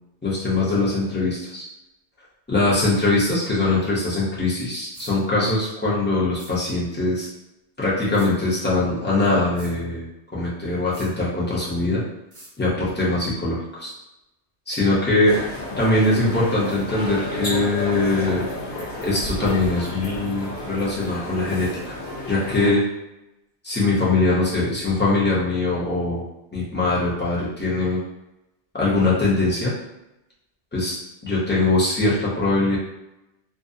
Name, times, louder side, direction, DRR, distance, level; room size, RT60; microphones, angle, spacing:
voice 1, 0.2-1.6 2.5-7.3 7.8-12.0 12.6-13.9 14.7-15.4 15.8-18.5 19.0-22.0 22.3-22.8 23.6-26.2 26.5-28.0 28.7-29.7 30.7-32.8, left 2 dB, 15° left, -7 dB, 0.5 m, -22 dB
sound 1, 4.9-5.1 6.4-6.5 8.1-8.3 9.6-9.7 10.9-11.1 12.3-12.5, right 1 dB, 55° right, 0.9 m, -44 dB
sound 2, 15.2-22.7, left 1 dB, 50° left, 0.8 m, -31 dB
2.6 x 2.0 x 2.6 m, 0.92 s
omnidirectional pair, 1.2 m